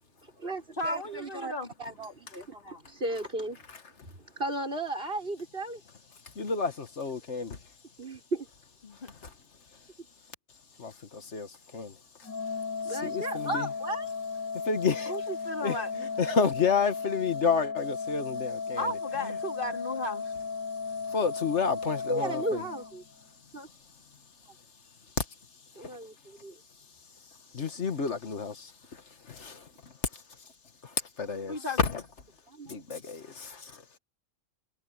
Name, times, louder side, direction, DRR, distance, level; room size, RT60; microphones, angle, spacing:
voice 1, 0.2-1.5 1.8-3.7 4.0-5.8 8.0-8.5 12.8-14.1 22.1-23.0 23.5-23.7 25.8-26.6 31.5-31.6 32.5-32.8, right 1 dB, 45° right, 6.0 m, -35 dB
voice 2, 0.8-1.7 8.8-9.1 15.0-16.1 18.8-20.3 31.5-32.0, left 1 dB, 45° left, 3.4 m, -35 dB
voice 3, 6.4-7.6 9.2-9.3 10.8-11.9 12.9-13.7 14.7-15.1 15.6-18.9 19.2-19.4 21.1-22.6 25.2-25.3 27.5-29.0 29.3-29.6 31.2-32.0 32.7-33.8, left 5 dB, 65° left, 1.8 m, -30 dB
Organ, 12.2-23.3, left 5 dB, 90° right, 7.8 m, -35 dB
omnidirectional pair, 1.3 m